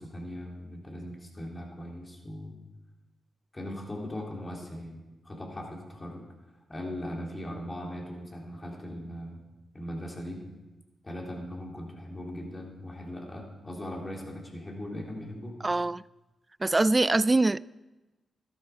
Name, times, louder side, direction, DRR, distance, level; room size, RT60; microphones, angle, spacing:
voice 1, 0.0-2.6 3.5-5.0 5.2-6.2 6.7-9.4 9.7-10.4 11.0-15.6, left 1 dB, 25° left, 3.5 m, -39 dB
voice 2, 15.6-16.0 16.6-17.6, right 2 dB, 25° right, 0.3 m, -23 dB
13.0 x 12.0 x 4.9 m
cardioid pair, 60°, 0 cm